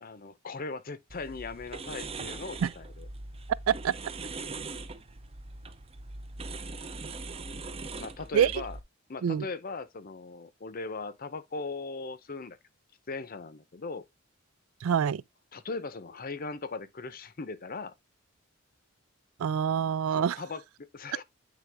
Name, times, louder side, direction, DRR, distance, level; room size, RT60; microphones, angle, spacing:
voice 1, 0.0-3.1 8.0-8.8 9.1-12.6 13.1-14.0 15.5-17.9 20.1-21.2, left 3 dB, 45° left, 0.6 m, -39 dB
sound 1, 1.1-8.8, right 3 dB, 30° right, 0.6 m, -41 dB
voice 2, 14.8-15.2 19.4-20.4, right 8 dB, 80° right, 0.4 m, -26 dB
9.2 x 3.4 x 3.4 m
head